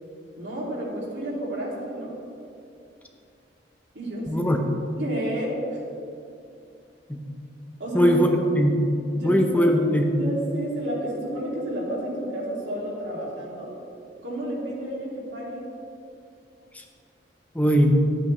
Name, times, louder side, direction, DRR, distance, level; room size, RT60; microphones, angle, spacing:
voice 1, 0.4-2.2 3.9-4.5 5.0-5.8 7.8-8.4 9.1-13.7 14.2-15.7, right 1 dB, 85° right, -5 dB, 2.6 m, -31 dB
voice 2, 4.3-4.6 7.1-7.2 7.9-8.8 9.2-10.1 16.7-16.8 17.5-17.9, equal, 10° left, 3 dB, 0.7 m, -20 dB
12.5 x 8.6 x 3.2 m, 2.6 s
head